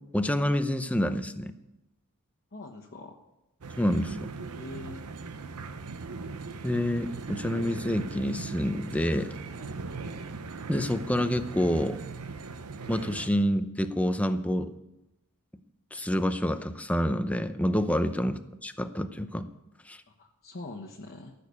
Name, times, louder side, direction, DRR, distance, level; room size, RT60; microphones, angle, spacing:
voice 1, 0.1-1.5 3.8-4.2 6.6-9.4 10.7-12.0 12.9-14.7 15.9-19.5 19.9-20.0, equal, 5° left, 9 dB, 0.7 m, -27 dB
voice 2, 2.5-3.2 4.5-5.0 9.5-9.8 17.9-18.1 20.1-21.3, left 2 dB, 45° left, 1 dB, 1.2 m, -44 dB
sound 1, 3.6-13.3, right 4 dB, 85° right, 0.8 m, -39 dB
14.5 x 6.9 x 8.5 m, 0.95 s
head